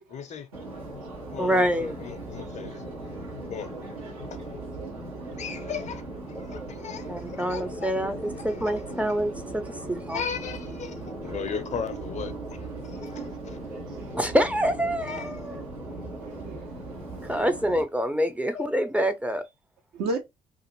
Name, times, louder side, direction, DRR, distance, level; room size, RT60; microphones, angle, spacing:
voice 1, 0.1-0.5 1.3-2.8 3.5-3.7 5.4-6.0 6.3-7.9 8.3-9.2 10.1-12.3 12.8-13.6 15.1-15.3 18.5-18.7, left 7 dB, 40° left, 0.5 m, -37 dB
Subway metro underground, 0.5-17.8, right 2 dB, 85° right, 1.0 m, -38 dB
voice 2, 1.4-1.9 7.1-10.2 14.2-15.6 17.2-19.4, equal, 5° right, 0.5 m, -26 dB
voice 3, 3.4-3.8 4.2-4.3 4.8-5.3 8.5-8.7 9.7-9.8 12.9-13.3 13.6-14.2 16.2-16.7 19.9-20.2, right 2 dB, 60° right, 0.6 m, -37 dB
2.5 x 2.5 x 2.9 m
figure-of-eight pair, 45°, 18 cm